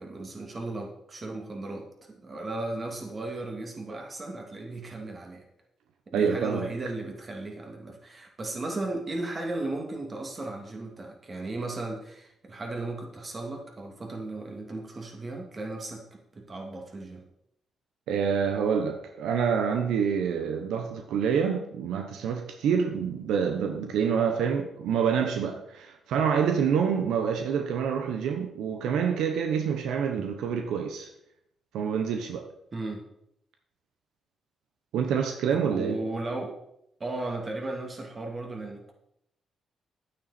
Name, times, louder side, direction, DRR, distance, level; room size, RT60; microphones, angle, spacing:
voice 1, 0.0-5.4 6.1-17.2 30.2-30.3 32.7-33.0 35.5-36.6 37.0-38.9, right 2 dB, 35° right, 2 dB, 2.5 m, -36 dB
voice 2, 6.1-6.7 18.1-31.1 31.7-32.4 34.9-36.0, right 7 dB, 90° right, 5 dB, 1.0 m, -27 dB
9.9 x 9.1 x 4.3 m, 0.78 s
cardioid pair, 85°, 0 cm